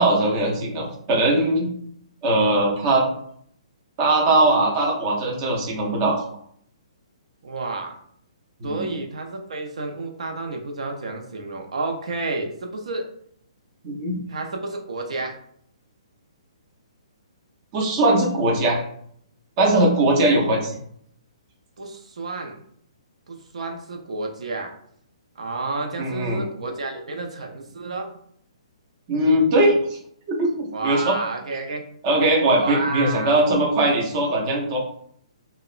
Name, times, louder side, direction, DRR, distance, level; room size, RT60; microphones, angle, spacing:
voice 1, 0.0-1.7 2.2-3.1 4.0-6.2 8.6-8.9 13.8-14.2 17.7-18.8 19.6-20.7 26.0-26.4 29.1-30.0 30.3-31.2 32.0-34.8, right 1 dB, 25° right, -2 dB, 0.4 m, -20 dB
voice 2, 7.4-7.9 8.6-13.1 14.3-15.4 21.8-22.6 23.3-24.7 25.4-28.1 30.7-31.9 32.6-33.6, right 3 dB, 75° right, 3 dB, 0.5 m, -30 dB
2.8 x 2.0 x 2.3 m, 0.65 s
hypercardioid pair, 170°, 3 cm